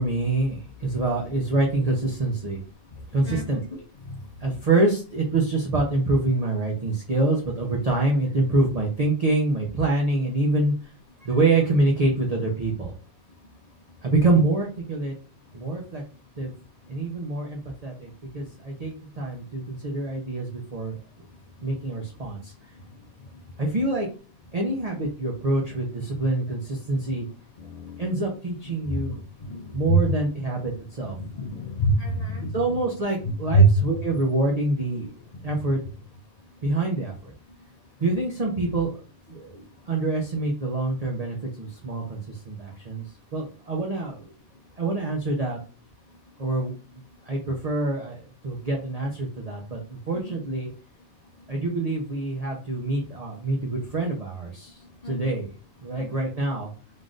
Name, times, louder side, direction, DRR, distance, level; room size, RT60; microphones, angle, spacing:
voice 1, 0.0-2.6 3.1-3.8 4.4-10.7 11.2-12.9 14.0-15.1 15.5-16.0 16.4-16.5 16.9-18.1 18.3-21.0 21.6-22.5 23.6-24.1 24.5-27.3 28.0-29.2 29.7-31.2 32.5-35.1 35.4-35.8 36.6-37.3 38.0-39.0 39.3-42.2 42.5-43.0 43.3-44.3 44.8-45.6 46.4-46.7 47.3-49.8 50.1-50.7 51.5-54.8 55.0-55.5 55.8-56.7, right 2 dB, 40° right, -1 dB, 0.6 m, -26 dB
voice 2, 27.7-28.3 28.9-29.0 29.5-30.0 31.2-32.5 33.2-33.7 50.1-50.2 55.0-55.3, right 3 dB, 85° left, 2 dB, 0.3 m, -23 dB
3.7 x 2.5 x 3.7 m, 0.37 s
omnidirectional pair, 1.4 m